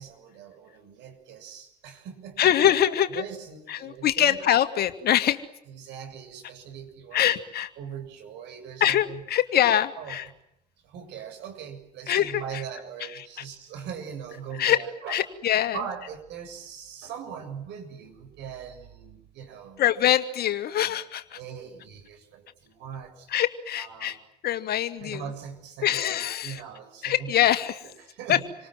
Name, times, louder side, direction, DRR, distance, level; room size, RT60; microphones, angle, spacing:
voice 1, 0.0-2.4 3.1-4.4 5.7-7.4 7.8-9.2 10.0-10.2 10.8-15.2 15.7-19.8 20.7-21.0 21.3-23.3 23.7-24.2 25.0-26.1 26.4-27.3 27.8-28.4, right 7 dB, 60° right, 6 dB, 7.3 m, -40 dB
voice 2, 2.4-3.2 3.7-5.4 7.1-7.7 8.8-10.3 12.1-12.6 13.1-13.4 14.6-14.8 15.1-15.8 19.8-21.4 23.3-24.2 24.4-25.3 25.8-26.6 27.0-27.9 28.3-28.4, left 11 dB, 50° left, 10 dB, 2.2 m, -24 dB
28.0 x 26.0 x 7.8 m, 0.76 s
figure-of-eight pair, 60°, 21 cm